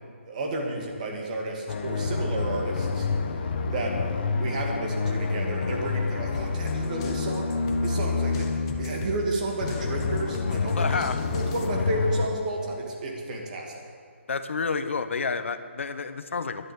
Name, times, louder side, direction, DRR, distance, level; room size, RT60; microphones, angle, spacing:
voice 1, 0.3-3.9 4.3-7.5 7.8-13.7, right 2 dB, 35° right, 0 dB, 2.4 m, -32 dB
sound 1, 1.7-12.3, left 4 dB, 45° left, 1.1 m, -28 dB
sound 2, 6.3-11.7, left 6 dB, 25° left, 0.8 m, -41 dB
voice 2, 10.7-11.2 14.3-16.7, left 5 dB, 70° left, 10 dB, 1.0 m, -29 dB
11.0 x 7.9 x 8.8 m, 2.2 s
hypercardioid pair, 165°, 7 cm